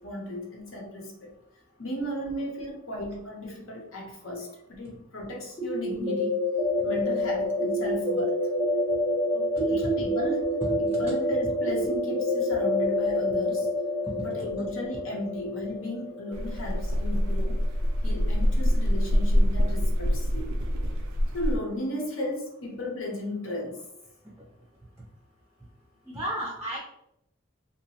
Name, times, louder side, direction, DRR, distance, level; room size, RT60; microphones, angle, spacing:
voice 1, 0.0-1.3 1.8-6.4 6.8-8.5 9.7-10.4 10.8-13.7 14.2-17.6 18.0-20.5 21.3-23.8, equal, 70° left, 0 dB, 0.7 m, -35 dB
sound 1, 5.6-17.3, left 1 dB, 30° left, 0.8 m, -27 dB
voice 2, 9.3-9.8 10.6-10.7 14.1-14.2 26.1-26.8, right 1 dB, 10° right, -4 dB, 0.4 m, -34 dB
sound 2, 16.3-21.6, equal, 80° right, 0.4 m, -25 dB
2.8 x 2.0 x 2.8 m, 0.79 s
head